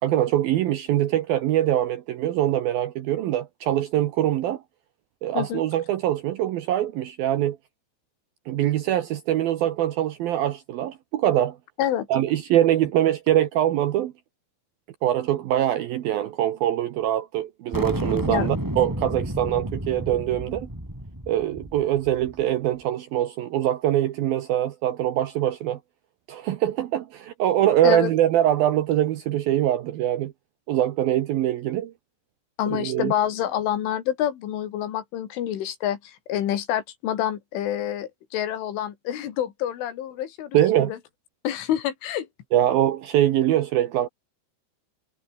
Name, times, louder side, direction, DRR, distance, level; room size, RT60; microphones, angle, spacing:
voice 1, 0.0-4.6 5.2-7.6 8.5-11.6 12.1-14.1 15.0-20.7 21.3-25.8 26.3-30.3 30.7-31.9 32.7-33.1 40.5-40.9 42.5-44.1, right 12 dB, 70° right, 2.3 m, -23 dB
sound 1, 17.7-22.4, equal, 5° right, 5.6 m, -31 dB
voice 2, 32.6-41.0 41.4-42.3, left 11 dB, 85° left, 5.0 m, -27 dB
omnidirectional pair, 5.4 m